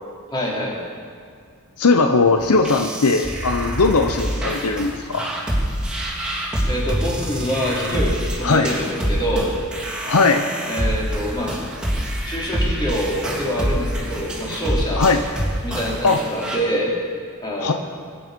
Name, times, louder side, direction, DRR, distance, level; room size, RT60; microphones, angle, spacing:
voice 1, 0.3-0.8 6.7-9.5 10.7-11.6 12.2-15.1 15.6-17.0 17.4-17.7, equal, 20° left, -5 dB, 3.8 m, -25 dB
voice 2, 1.8-5.3 8.4-8.7 10.1-10.5 14.5-14.6 15.0-15.2 16.0-16.2 17.6-17.7, left 3 dB, 75° left, 6 dB, 0.8 m, -18 dB
sound 1, 2.4-16.6, equal, 5° right, 3.2 m, -26 dB
23.0 x 9.3 x 5.3 m, 2.1 s
head